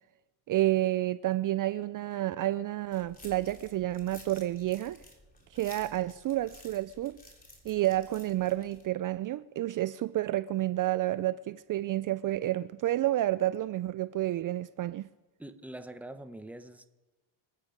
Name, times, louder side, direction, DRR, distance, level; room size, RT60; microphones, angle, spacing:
voice 1, 0.5-5.0 5.5-7.2 7.6-15.1, right 15 dB, 40° right, 0.4 m, -30 dB
sound 1, 2.9-8.9, left 1 dB, 15° left, 3.4 m, -54 dB
voice 2, 15.4-16.9, right 1 dB, 5° right, 1.0 m, -44 dB
26.5 x 8.9 x 5.2 m
supercardioid pair, 100°, 50 cm